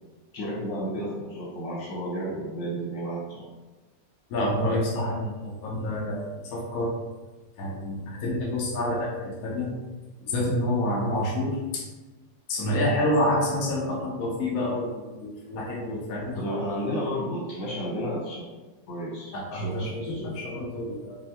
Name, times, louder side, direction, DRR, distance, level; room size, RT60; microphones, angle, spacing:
voice 1, 0.3-3.5 16.3-18.5 18.9-20.3, equal, 80° left, -6 dB, 2.1 m, -32 dB
voice 2, 4.3-6.9 7.6-9.7 10.3-11.8 12.5-16.8 19.3-21.2, left 1 dB, 60° left, -3 dB, 1.1 m, -28 dB
5.4 x 2.2 x 2.9 m, 1.2 s
omnidirectional pair, 2.0 m